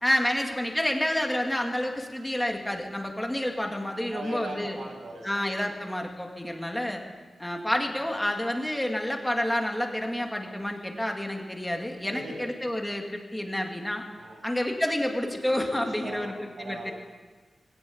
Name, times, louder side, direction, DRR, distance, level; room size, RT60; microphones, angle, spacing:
voice 1, 0.0-4.8 5.2-7.0 7.4-14.1 14.4-16.3 16.6-16.9, left 1 dB, 5° left, 2 dB, 2.2 m, -29 dB
voice 2, 4.1-5.8 12.1-12.5 14.2-14.4 15.7-16.9, right 1 dB, 85° right, 0 dB, 7.3 m, -39 dB
21.0 x 18.5 x 8.5 m, 1.4 s
wide cardioid pair, 170°, 0 cm